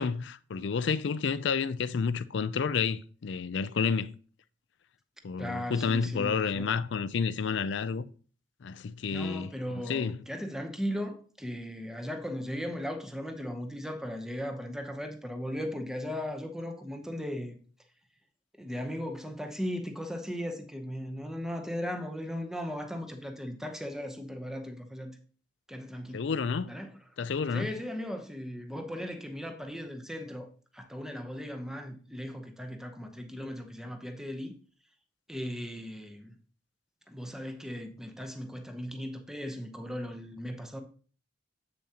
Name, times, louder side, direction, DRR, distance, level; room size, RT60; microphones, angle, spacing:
voice 1, 0.0-4.1 5.2-8.0 8.6-9.5 9.7-10.2 26.1-26.7 27.2-27.7, left 5 dB, 60° left, 0.4 m, -30 dB
voice 2, 5.4-6.7 9.1-17.6 18.6-25.2 25.7-26.2 26.7-26.9 27.5-34.5 35.3-36.4 37.1-40.8, equal, 5° right, 0.8 m, -37 dB
7.8 x 6.9 x 2.9 m
head